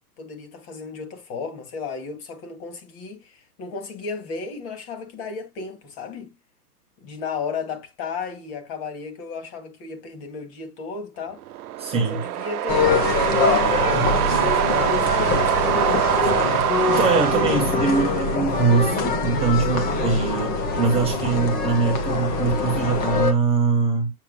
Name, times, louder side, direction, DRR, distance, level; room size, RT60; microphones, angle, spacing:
voice 1, 0.2-6.3 7.0-11.4 11.9-16.5, left 5 dB, 35° left, 2.0 m, -34 dB
sound 1, 11.4-18.5, right 13 dB, 70° right, 0.7 m, -24 dB
voice 2, 11.8-12.2 16.9-24.1, right 5 dB, 15° right, 0.9 m, -22 dB
sound 2, 12.7-23.3, left 4 dB, 20° left, 0.8 m, -23 dB
7.5 x 6.9 x 2.2 m
hypercardioid pair, 145°, 47 cm